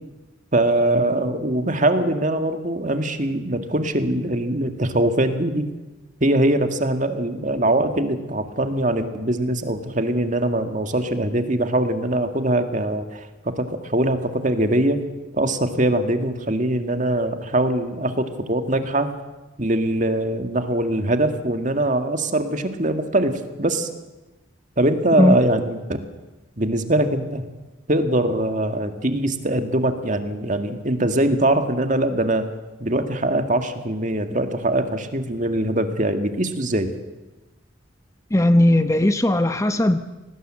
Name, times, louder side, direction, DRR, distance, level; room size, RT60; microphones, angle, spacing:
voice 1, 0.5-5.7 6.2-15.0 15.3-19.1 19.6-23.9 24.8-25.8 26.6-27.4 27.9-32.5 32.8-36.9, right 1 dB, 40° right, 7 dB, 1.9 m, -22 dB
voice 2, 38.3-40.0, left 1 dB, 15° left, 9 dB, 0.8 m, -17 dB
26.0 x 19.0 x 7.7 m, 1.1 s
head